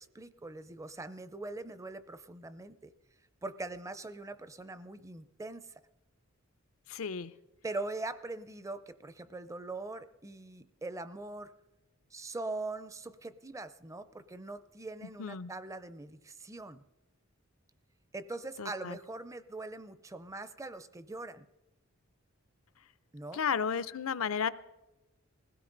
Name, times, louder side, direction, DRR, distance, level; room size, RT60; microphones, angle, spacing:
voice 1, 0.0-2.9 3.4-5.7 7.6-11.5 12.1-16.8 18.1-21.5 23.1-23.4, right 2 dB, 15° right, 13 dB, 0.5 m, -42 dB
voice 2, 6.9-7.3 15.2-15.5 18.6-19.0 23.3-24.5, left 6 dB, 80° left, 15 dB, 0.6 m, -33 dB
20.5 x 16.5 x 3.9 m, 1.0 s
head